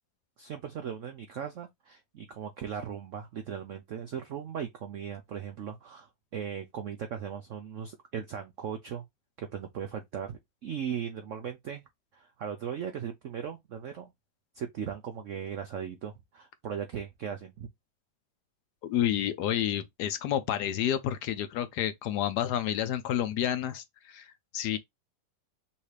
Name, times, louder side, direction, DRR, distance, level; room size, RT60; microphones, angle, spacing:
voice 1, 0.4-9.0 9.4-11.8 12.1-14.1 14.5-17.7, right 8 dB, 75° right, 0.7 m, -38 dB
voice 2, 18.8-24.8, left 11 dB, 70° left, 1.0 m, -30 dB
5.6 x 2.6 x 3.3 m
omnidirectional pair, 2.0 m